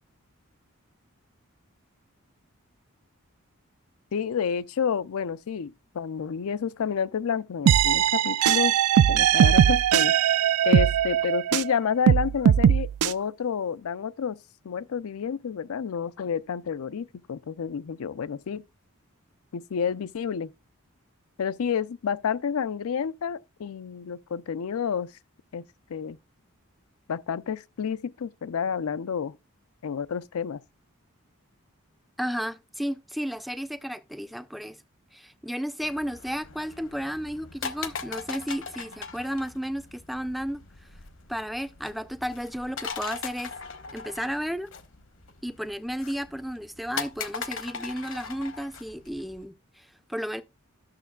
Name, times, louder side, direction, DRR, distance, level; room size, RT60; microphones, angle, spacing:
voice 1, 4.1-8.7 9.1-10.1 10.6-14.4 14.6-18.6 19.5-20.5 21.4-25.1 25.5-25.6 25.9-26.2 27.1-29.4 29.8-30.6, left 7 dB, 80° left, 0.4 m, -30 dB
sound 1, 7.7-11.7 12.1-13.1, right 10 dB, 85° right, 0.3 m, -20 dB
voice 2, 32.2-34.8 35.1-40.6 41.3-43.5 43.9-44.7 45.4-50.4, equal, ahead, 0.4 m, -33 dB
sound 2, 35.8-49.4, left 5 dB, 60° left, 0.9 m, -40 dB
11.5 x 6.5 x 2.3 m
head